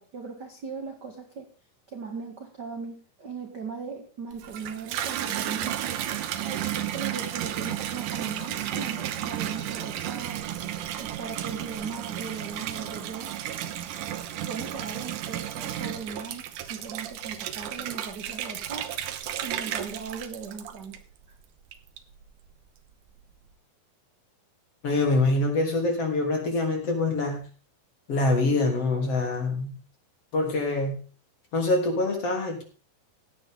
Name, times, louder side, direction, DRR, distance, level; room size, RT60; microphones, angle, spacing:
voice 1, 0.0-1.5 1.9-6.0 6.4-10.4 11.0-13.4 14.5-18.9 19.4-21.0, right 5 dB, 50° right, 3 dB, 1.2 m, -38 dB
Water tap faucet / Bathtub (filling or washing), 4.3-21.2 21.7-22.3, right 11 dB, 70° right, 2.3 m, -33 dB
voice 2, 24.8-27.4 28.1-29.7 30.3-31.0 31.5-32.6, left 2 dB, 40° left, 1 dB, 3.8 m, -25 dB
16.5 x 10.5 x 3.7 m, 0.38 s
omnidirectional pair, 4.3 m